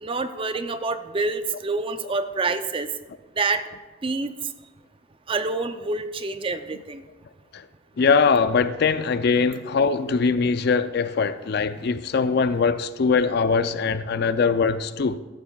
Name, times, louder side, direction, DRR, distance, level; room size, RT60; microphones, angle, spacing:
voice 1, 0.0-2.9 3.4-3.6 4.0-4.3 5.3-7.0, right 3 dB, 30° right, 0.5 m, -27 dB
voice 2, 8.0-15.2, left 5 dB, 60° left, 0.4 m, -22 dB
14.0 x 11.5 x 2.3 m
head